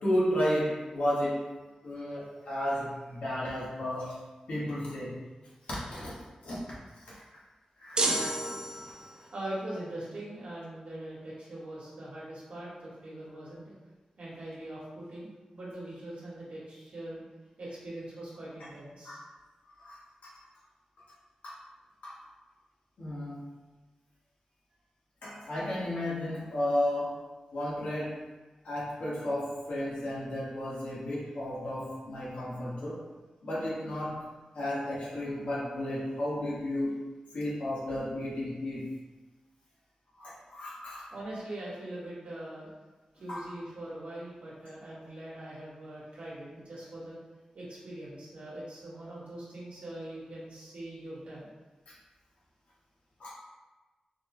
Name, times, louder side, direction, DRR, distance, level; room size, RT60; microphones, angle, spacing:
voice 1, 0.0-1.4 1.8-4.2 4.5-5.1 5.7-6.1 6.4-6.6 7.0-7.2 7.8-8.3 19.0-19.2 19.8-20.3 21.4-21.6 22.0-22.2 23.0-23.5 25.2-27.2 27.5-28.2 28.6-33.0 33.4-34.2 34.5-36.9 37.3-38.8 40.2-41.1 43.3-43.5 51.9-52.0 53.2-53.3, left 1 dB, 85° left, -7 dB, 1.1 m, -33 dB
sound 1, 8.0-9.3, right 2 dB, 40° right, 0.4 m, -30 dB
voice 2, 9.1-13.7 14.2-17.2 17.6-19.2 41.1-42.7 43.1-47.2 47.5-51.5, right 1 dB, 75° right, -7 dB, 1.2 m, -42 dB
4.3 x 2.0 x 2.9 m, 1.2 s
wide cardioid pair, 100°, 2 cm